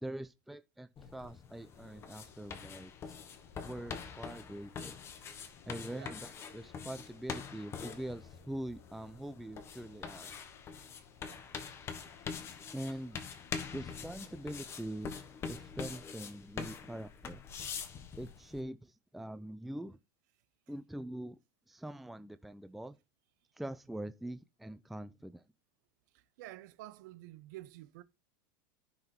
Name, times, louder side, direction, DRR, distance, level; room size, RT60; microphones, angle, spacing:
voice 1, 0.0-2.9 3.6-5.0 5.7-10.3 12.7-13.2 13.7-15.1 15.5-17.4 18.2-20.0 20.7-21.4 21.7-23.0 23.6-25.4, right 1 dB, ahead, 0.4 m, -43 dB
sound 1, 1.0-18.6, left 6 dB, 25° left, 1.3 m, -45 dB
sound 2, 1.7-15.7, left 9 dB, 60° left, 1.6 m, -62 dB
voice 2, 26.1-28.0, right 15 dB, 65° right, 1.0 m, -50 dB
11.0 x 5.9 x 4.4 m
supercardioid pair, 145°, 10 cm